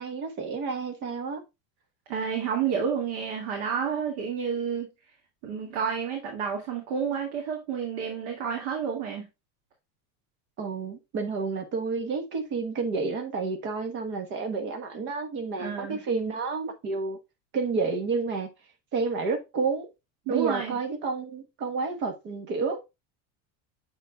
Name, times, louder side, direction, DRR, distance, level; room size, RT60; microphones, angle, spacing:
voice 1, 0.0-1.4 10.6-17.2 17.5-18.5 18.9-19.9 20.3-22.8, right 4 dB, 30° right, 1.2 m, -30 dB
voice 2, 2.1-4.9 5.4-9.3 15.6-16.0 20.3-20.8, right 7 dB, 70° right, 2.1 m, -30 dB
7.2 x 6.1 x 2.3 m
cardioid pair, 180°, 35 cm